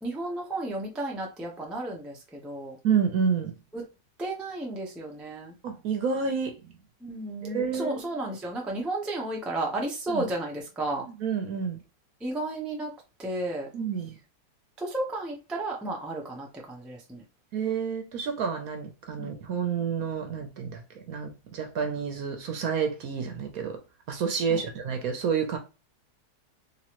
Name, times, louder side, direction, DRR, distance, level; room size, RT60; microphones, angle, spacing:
voice 1, 0.0-2.8 3.7-3.8 4.2-5.5 7.0-11.1 12.2-12.9 13.2-13.7 14.8-17.2 19.2-19.3 24.5-24.6, right 2 dB, ahead, 0.4 m, -33 dB
voice 2, 2.8-3.5 5.6-6.7 7.4-8.1 10.1-10.2 11.2-11.8 13.7-14.1 17.5-23.8 24.1-25.6, right 6 dB, 65° right, 1.1 m, -29 dB
3.4 x 3.0 x 3.0 m
omnidirectional pair, 1.9 m